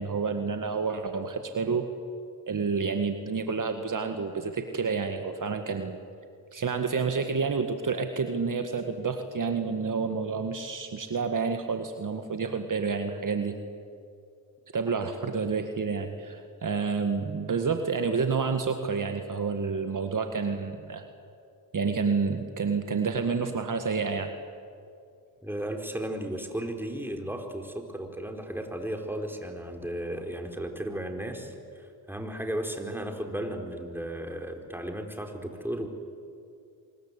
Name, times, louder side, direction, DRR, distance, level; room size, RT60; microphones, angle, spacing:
voice 1, 0.0-1.9 2.5-6.0 6.5-13.6 14.7-21.0 21.7-24.3, right 5 dB, 45° right, 6 dB, 1.9 m, -29 dB
voice 2, 25.4-35.9, right 1 dB, 5° right, 3 dB, 4.3 m, -35 dB
25.0 x 21.5 x 8.3 m, 2.4 s
supercardioid pair, 55°, 42 cm